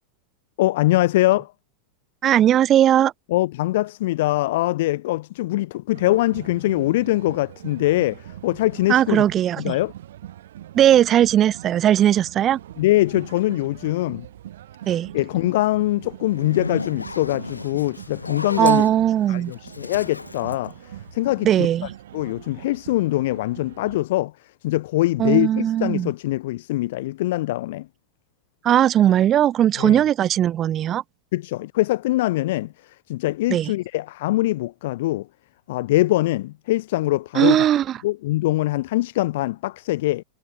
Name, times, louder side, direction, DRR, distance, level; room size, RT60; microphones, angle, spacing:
voice 1, 0.6-1.5 3.3-9.2 9.6-9.9 12.8-14.3 15.1-18.8 19.3-21.5 22.1-24.3 24.6-27.9 29.8-30.0 31.3-35.3 35.7-37.7 38.0-40.2, left 17 dB, 55° left, 0.7 m, -23 dB
voice 2, 2.2-3.1 8.9-9.7 10.7-12.6 14.9-15.1 18.6-19.5 21.4-21.9 25.2-26.1 28.6-31.0 33.5-33.7 37.3-38.0, right 11 dB, 30° right, 0.4 m, -18 dB
sound 1, 5.9-24.0, right 12 dB, 60° right, 2.2 m, -42 dB
Zipper (clothing), 16.2-21.5, left 3 dB, 80° left, 1.0 m, -34 dB
figure-of-eight pair, 90°, 0 cm